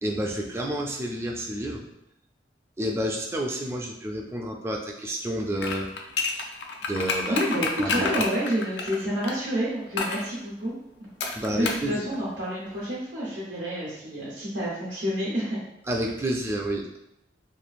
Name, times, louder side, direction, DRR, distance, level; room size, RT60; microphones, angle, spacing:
voice 1, 0.0-1.9 2.8-5.9 6.9-7.4 7.8-8.3 11.3-12.0 15.9-17.0, right 1 dB, 15° right, 1 dB, 0.3 m, -30 dB
sound 1, 5.6-9.4 10.0-10.3 11.2-11.9 12.1-12.2, left 4 dB, 75° left, 0.4 m, -29 dB
voice 2, 7.3-10.7 11.0-11.1 11.5-15.6, equal, 85° right, -8 dB, 0.9 m, -29 dB
3.0 x 2.3 x 2.5 m, 0.83 s
head